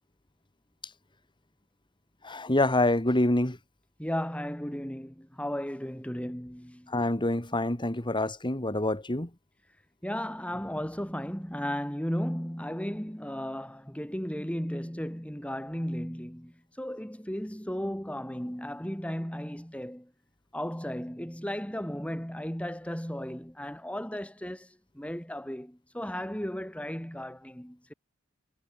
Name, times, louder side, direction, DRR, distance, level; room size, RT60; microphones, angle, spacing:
voice 1, 2.2-3.6 6.9-9.3, left 1 dB, 20° left, 2.3 m, -26 dB
voice 2, 4.0-6.9 10.0-20.1 20.5-27.9, equal, 5° left, 3.6 m, -35 dB
head